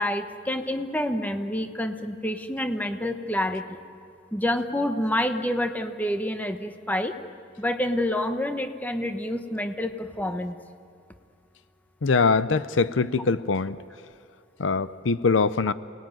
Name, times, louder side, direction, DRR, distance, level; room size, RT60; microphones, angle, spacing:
voice 1, 0.0-3.8 4.3-7.1 7.6-10.6, left 1 dB, 10° left, 7 dB, 1.1 m, -28 dB
voice 2, 12.0-13.8 14.6-15.7, left 4 dB, 85° left, 15 dB, 0.6 m, -23 dB
29.0 x 19.5 x 9.3 m, 2.3 s
head